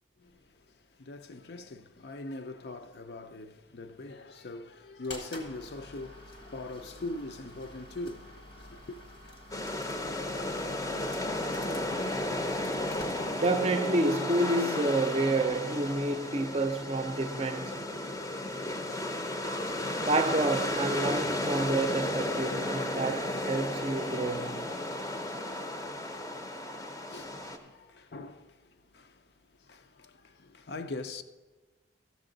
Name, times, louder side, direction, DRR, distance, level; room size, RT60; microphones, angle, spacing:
voice 1, 0.2-9.0 27.1-29.2 29.6-31.2, left 2 dB, 65° left, 0.5 m, -42 dB
sound 1, 5.0-13.8, left 1 dB, 85° left, 1.4 m, -49 dB
sound 2, 9.5-27.6, left 1 dB, 20° left, 0.6 m, -33 dB
voice 2, 13.4-17.9 20.0-24.7, right 2 dB, 35° right, 0.5 m, -29 dB
14.0 x 6.9 x 3.9 m
head